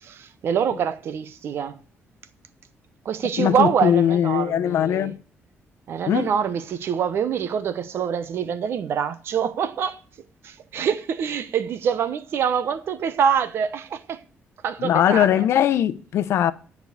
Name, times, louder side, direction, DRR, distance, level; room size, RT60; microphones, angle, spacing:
voice 1, 0.0-1.8 3.0-5.1 5.9-10.0 10.4-14.2 14.6-15.4, right 7 dB, 60° right, 0.9 m, -25 dB
voice 2, 3.4-5.1 6.1-6.3 14.8-16.5, left 10 dB, 75° left, 0.7 m, -20 dB
11.0 x 4.7 x 8.0 m
cardioid pair, 135°, 5 cm